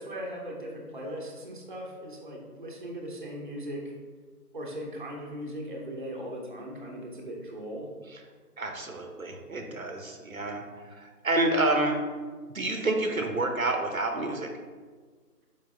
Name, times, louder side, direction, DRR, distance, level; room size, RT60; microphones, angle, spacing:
voice 1, 0.0-3.9 4.5-7.9, equal, 30° right, -2 dB, 0.8 m, -38 dB
voice 2, 8.6-10.6 10.9-12.0 12.5-14.5, right 2 dB, 60° right, 4 dB, 0.9 m, -28 dB
7.2 x 4.6 x 3.4 m, 1.5 s
figure-of-eight pair, 155°, 47 cm